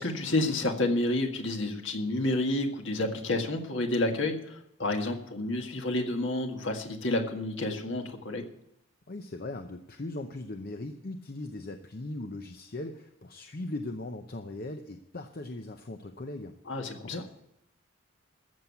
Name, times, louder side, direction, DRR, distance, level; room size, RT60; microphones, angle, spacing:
voice 1, 0.0-8.4 16.7-17.2, left 2 dB, 60° left, 4 dB, 1.7 m, -30 dB
voice 2, 9.1-17.4, left 2 dB, 45° left, 6 dB, 0.7 m, -39 dB
14.0 x 7.2 x 8.2 m, 0.81 s
head